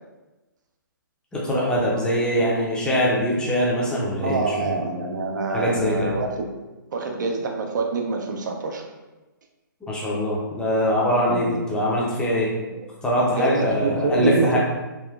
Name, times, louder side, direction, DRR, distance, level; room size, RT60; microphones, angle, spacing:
voice 1, 1.3-4.6 5.5-6.1 9.8-12.5 13.0-14.6, equal, 5° left, -5 dB, 0.5 m, -22 dB
sound 1, 1.5-3.8 4.5-7.9, right 1 dB, 85° right, 0.9 m, -40 dB
voice 2, 4.2-6.5 6.9-8.8 11.3-11.7 12.7-12.8 13.2-14.6, right 3 dB, 60° right, 2 dB, 0.5 m, -26 dB
3.4 x 2.4 x 2.3 m, 1.1 s
figure-of-eight pair, 130°, 11 cm